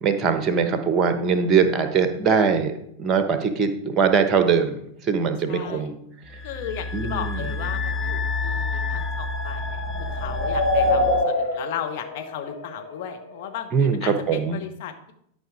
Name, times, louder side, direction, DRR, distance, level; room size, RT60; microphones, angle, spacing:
voice 1, 0.0-2.7 3.0-4.8 5.1-5.9 6.9-7.4 13.7-14.6, right 6 dB, 25° right, 8 dB, 1.1 m, -21 dB
voice 2, 5.5-5.9 6.4-9.8 10.1-15.1, left 9 dB, 50° left, 5 dB, 1.3 m, -35 dB
sound 1, 6.2-11.2, left 3 dB, 10° left, 0.5 m, -29 dB
sound 2, 7.7-13.5, left 2 dB, 90° left, 2.8 m, -27 dB
12.0 x 5.1 x 5.0 m, 0.72 s
figure-of-eight pair, 90°, 0 cm